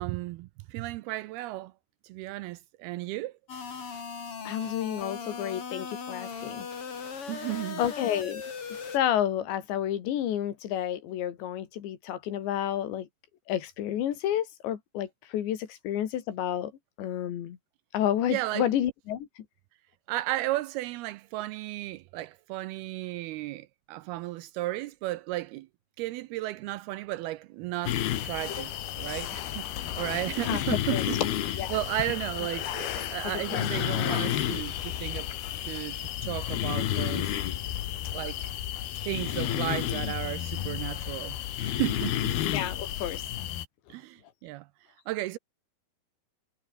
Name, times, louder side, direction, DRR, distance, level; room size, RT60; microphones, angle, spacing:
voice 1, 0.0-1.7 2.0-3.3 7.3-7.8 18.3-18.7 20.1-25.7 26.0-31.2 31.7-35.3 35.7-37.3 38.1-38.4 39.1-42.4 43.9-44.7 45.1-45.4, right 17 dB, 80° right, 2.4 m, -34 dB
sound 1, 3.5-9.0, left 5 dB, 35° left, 3.4 m, -38 dB
voice 2, 4.5-6.7 7.8-8.4 8.9-13.1 13.5-16.7 17.0-17.6 17.9-19.3 30.5-31.0 31.6-31.8 32.7-32.8 33.2-33.6 42.5-43.2, left 11 dB, 85° left, 4.5 m, -30 dB
sound 2, 27.9-43.7, left 12 dB, 70° left, 3.4 m, -31 dB
omnidirectional pair, 4.9 m